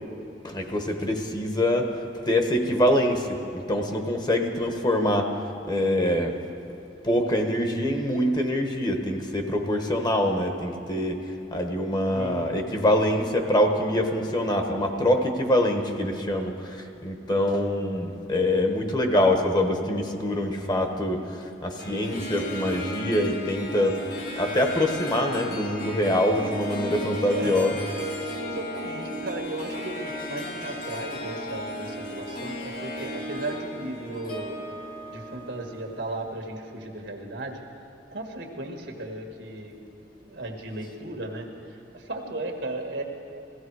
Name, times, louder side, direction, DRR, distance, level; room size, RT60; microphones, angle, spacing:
voice 1, 0.4-1.9 2.3-5.3 5.7-6.3 7.0-11.2 11.5-24.0 24.4-27.9 28.2-28.4, left 1 dB, 25° left, 4 dB, 1.0 m, -24 dB
voice 2, 12.1-12.5 27.3-27.8 28.4-34.6 35.1-37.6 38.1-39.7 40.2-43.0, right 2 dB, 80° right, 2 dB, 1.7 m, -35 dB
Harp, 21.8-36.3, equal, 55° left, 2.0 m, -35 dB
16.5 x 15.5 x 4.7 m, 2.8 s
head